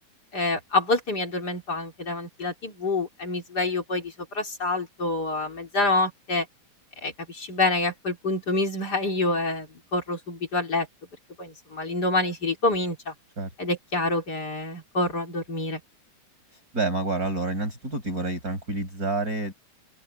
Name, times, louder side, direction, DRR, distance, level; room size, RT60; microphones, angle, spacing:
voice 1, 0.3-6.5 7.0-10.9 11.4-13.1 13.6-15.8, left 2 dB, 30° left, 4.2 m, -27 dB
voice 2, 16.7-19.5, right 2 dB, 25° right, 6.1 m, -28 dB
open air
omnidirectional pair, 3.8 m